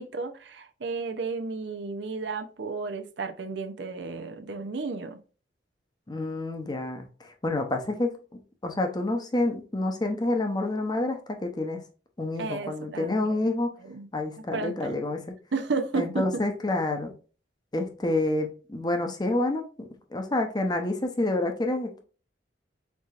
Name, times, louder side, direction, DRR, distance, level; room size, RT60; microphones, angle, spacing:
voice 1, 0.0-5.2 12.4-13.2 13.9-14.1 14.5-15.0 15.5-16.4, right 4 dB, 70° right, 0.6 m, -32 dB
voice 2, 6.1-8.1 8.6-11.8 12.2-13.7 14.1-15.3 15.9-17.1 17.7-22.0, left 2 dB, 25° left, 0.7 m, -28 dB
4.7 x 3.9 x 2.4 m
head